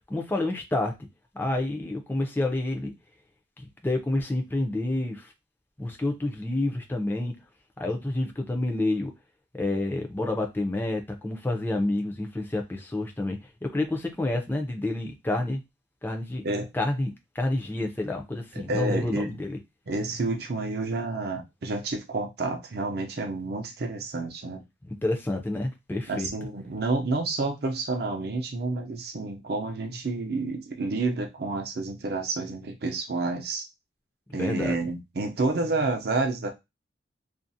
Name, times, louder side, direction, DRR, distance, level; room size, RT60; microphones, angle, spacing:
voice 1, 0.1-0.9 1.3-2.9 3.6-5.3 5.8-7.3 7.8-9.1 9.5-15.6 16.0-16.4 16.7-19.6 25.0-26.3 34.3-34.8, left 2 dB, 10° left, 0.4 m, -29 dB
voice 2, 18.7-19.3 19.9-24.6 26.1-33.6 34.3-36.5, right 3 dB, 55° right, 0.5 m, -29 dB
2.4 x 2.0 x 2.6 m
head